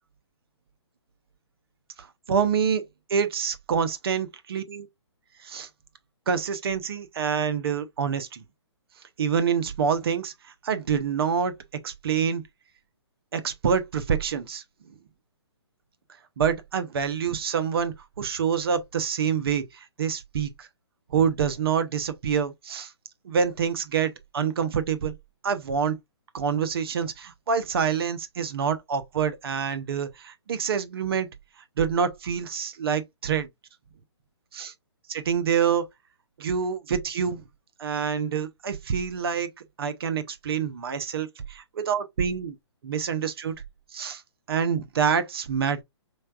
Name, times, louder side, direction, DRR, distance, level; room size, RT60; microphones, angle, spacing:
voice 1, 2.0-2.8 3.1-4.9 5.4-5.7 6.3-8.4 9.2-10.3 10.6-11.5 11.8-12.4 13.3-14.6 16.4-20.7 21.1-22.9 23.2-25.1 25.4-26.0 26.3-31.3 31.8-33.5 34.5-34.7 35.1-35.8 36.4-37.4 37.8-39.5 39.8-42.6 42.8-43.6 43.9-44.2 44.5-45.8, right 7 dB, 60° right, 0.9 m, -26 dB
4.4 x 3.2 x 2.4 m
hypercardioid pair, 150°, 15 cm